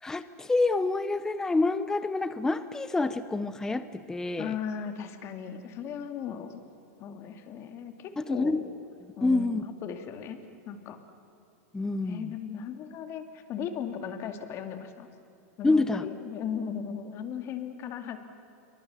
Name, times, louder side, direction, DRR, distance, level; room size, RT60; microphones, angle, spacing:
voice 1, 0.0-4.6 8.2-8.6 9.2-9.6 11.7-12.3 15.6-16.1, left 3 dB, 5° left, 12 dB, 0.7 m, -27 dB
voice 2, 4.4-6.6 7.0-8.5 9.2-10.4 10.6-11.0 12.1-15.1 15.6-18.2, left 8 dB, 35° left, 7 dB, 2.4 m, -37 dB
28.5 x 24.5 x 7.0 m, 2.7 s
supercardioid pair, 145°, 8 cm